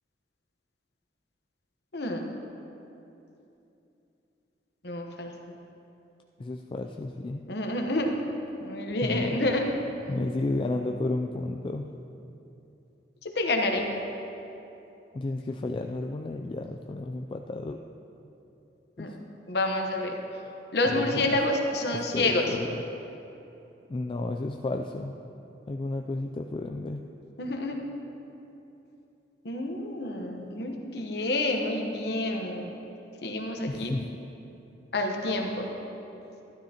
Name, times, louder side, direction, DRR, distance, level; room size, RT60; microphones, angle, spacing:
voice 1, 1.9-2.2 4.8-5.3 7.5-8.1 8.6-9.6 13.2-13.9 19.0-19.1 19.5-20.2 20.7-22.5 27.4-27.8 29.4-32.7 33.2-33.9 34.9-35.7, left 2 dB, 65° left, 2 dB, 1.0 m, -28 dB
voice 2, 6.4-7.5 9.0-9.4 10.1-11.9 15.1-17.8 19.0-19.2 20.9-21.4 21.9-22.8 23.9-25.1 25.7-27.1 33.7-34.1, left 2 dB, 30° left, 3 dB, 0.3 m, -32 dB
13.0 x 12.0 x 2.9 m, 2.9 s
head